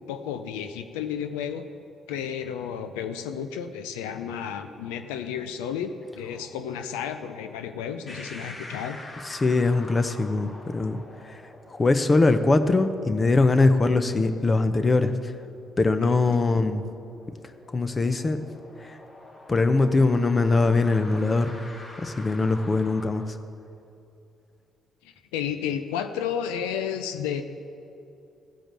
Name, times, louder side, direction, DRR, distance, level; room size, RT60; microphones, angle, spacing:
voice 1, 0.1-1.6 2.1-9.0 25.0-27.4, left 8 dB, 85° left, 8 dB, 0.5 m, -32 dB
sound 1, 8.1-23.1, left 1 dB, 50° left, 2.2 m, -46 dB
voice 2, 9.2-15.3 15.8-16.8 17.7-18.4 18.8-19.0 19.5-21.6 22.0-23.4, left 3 dB, 35° left, 9 dB, 0.8 m, -22 dB
15.0 x 5.1 x 7.5 m, 2.6 s
hypercardioid pair, 50°, 0 cm